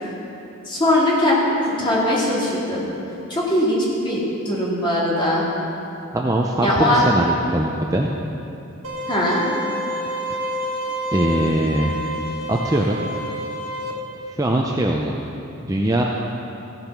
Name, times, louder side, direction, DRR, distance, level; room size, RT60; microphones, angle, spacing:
voice 1, 0.7-2.9 3.3-5.5 6.6-7.1 9.1-9.5, left 1 dB, 20° left, -5 dB, 2.4 m, -20 dB
voice 2, 6.1-8.1 10.3-10.5 11.1-11.9 12.5-13.1 14.3-15.2 15.7-16.0, right 1 dB, 15° right, -1 dB, 0.5 m, -21 dB
sound 1, 8.8-13.9, equal, 75° right, 1.6 m, -28 dB
15.5 x 6.8 x 6.0 m, 2.9 s
head